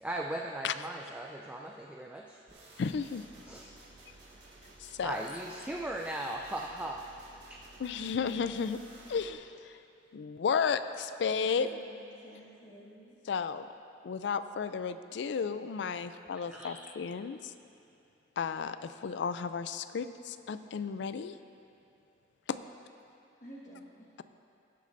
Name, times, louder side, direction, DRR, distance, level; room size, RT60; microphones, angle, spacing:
voice 1, 0.0-2.4 3.5-3.7 5.0-7.6 16.5-16.7, right 1 dB, 10° right, 0 dB, 0.3 m, -38 dB
sound 1, 2.5-9.3, right 2 dB, 60° right, 1.8 m, -54 dB
voice 2, 2.8-3.2 4.8-5.2 7.8-8.8 9.1-9.8 10.1-11.7 13.3-13.7 14.0-17.5 18.4-21.4 22.5-22.6, left 6 dB, 65° left, 12 dB, 0.3 m, -33 dB
voice 3, 11.6-13.1 16.5-16.7 23.4-24.2, equal, 40° left, -8 dB, 1.5 m, -52 dB
18.0 x 8.5 x 2.6 m, 2.6 s
head